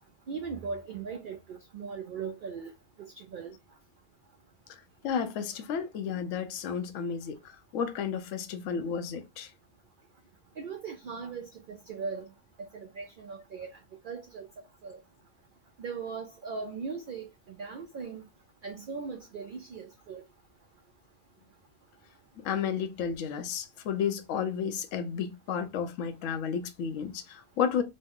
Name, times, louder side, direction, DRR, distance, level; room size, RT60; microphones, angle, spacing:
voice 1, 0.3-2.7 3.0-3.6 10.6-12.2 12.6-13.7 14.0-14.5 14.8-15.0 15.8-17.3 17.6-18.2 18.6-20.2, right 5 dB, 70° right, 0.4 m, -39 dB
voice 2, 5.0-9.5 22.4-27.8, left 7 dB, 75° left, 0.9 m, -32 dB
3.1 x 2.0 x 3.5 m
omnidirectional pair, 1.4 m